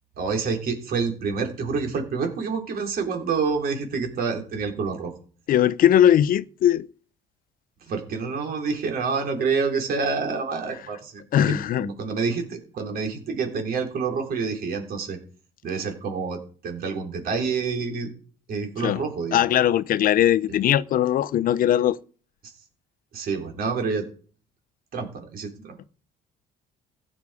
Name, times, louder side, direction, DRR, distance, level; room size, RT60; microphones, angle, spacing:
voice 1, 0.2-5.1 7.9-15.2 15.6-18.1 18.5-19.4 22.4-22.5 23.1-24.1 24.9-25.8, right 5 dB, 60° right, 3.7 m, -28 dB
voice 2, 5.5-6.9 11.3-11.9 18.8-19.0 19.3-22.0, left 11 dB, 55° left, 0.6 m, -20 dB
15.5 x 9.7 x 4.9 m
cardioid pair, 110°, 17 cm